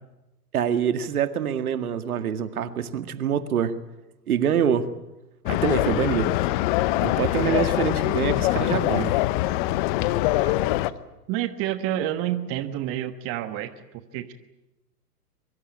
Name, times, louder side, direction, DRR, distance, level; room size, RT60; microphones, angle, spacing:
voice 1, 0.5-3.8 4.3-4.9 5.5-6.3 7.0-9.2, right 8 dB, 60° right, 10 dB, 2.1 m, -25 dB
sound 1, 5.5-10.9, left 16 dB, 30° left, 0.9 m, -23 dB
voice 2, 7.4-7.7 10.4-10.9 11.3-13.7 14.1-14.3, right 12 dB, 30° right, 10 dB, 1.3 m, -29 dB
23.5 x 23.5 x 8.9 m, 0.98 s
hypercardioid pair, 120°, 48 cm